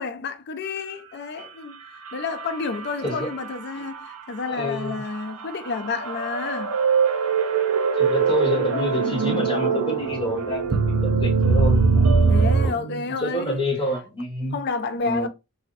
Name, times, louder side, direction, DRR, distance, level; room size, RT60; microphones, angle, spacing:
voice 1, 0.0-1.8 2.1-6.8 12.2-13.6 14.5-15.3, left 4 dB, 50° left, 0.4 m, -30 dB
sound 1, 2.1-3.5 4.0-4.1 5.2-12.7, right 5 dB, 75° right, 0.6 m, -21 dB
voice 2, 4.5-5.0 8.0-12.0 12.6-14.6 15.0-15.3, left 1 dB, 25° left, 1.1 m, -28 dB
2.6 x 2.0 x 3.9 m
head